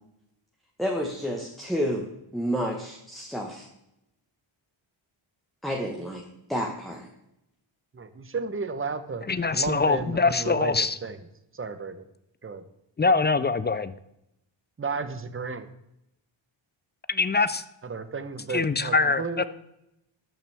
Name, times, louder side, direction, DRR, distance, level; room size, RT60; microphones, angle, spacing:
voice 1, 0.8-2.1 2.3-3.7 5.6-6.2 6.5-7.1, equal, ahead, 0 dB, 1.2 m, -30 dB
voice 2, 7.9-11.2 11.5-12.0 12.4-12.6 14.8-15.7 17.8-19.4, right 4 dB, 25° right, 10 dB, 0.8 m, -33 dB
voice 3, 9.3-11.0 13.0-13.9 17.1-17.6 18.5-19.4, left 4 dB, 25° left, 15 dB, 0.3 m, -23 dB
13.5 x 5.8 x 3.4 m, 0.84 s
cardioid pair, 90°, 49 cm